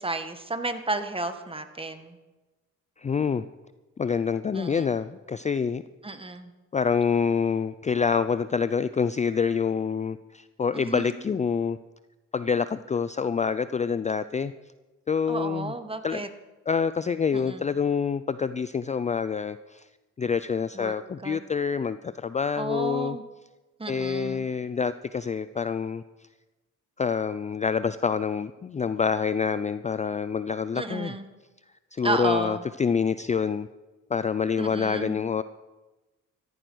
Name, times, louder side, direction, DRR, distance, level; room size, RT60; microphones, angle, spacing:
voice 1, 0.0-2.2 4.5-4.9 6.0-6.5 10.7-11.2 15.3-16.3 17.3-17.6 20.7-20.9 21.2-21.4 22.6-23.2 23.8-24.4 30.7-31.2 32.0-32.6 34.6-35.2, right 2 dB, 20° right, 8 dB, 1.6 m, -32 dB
voice 2, 3.0-3.4 4.0-5.8 6.7-11.8 12.3-14.5 15.1-15.7 16.0-16.3 16.7-19.9 20.2-23.2 23.9-26.0 27.0-31.1 31.9-33.7 34.1-35.4, left 6 dB, 25° left, 14 dB, 0.4 m, -27 dB
15.0 x 14.0 x 6.3 m, 1.2 s
cardioid pair, 90°, 30 cm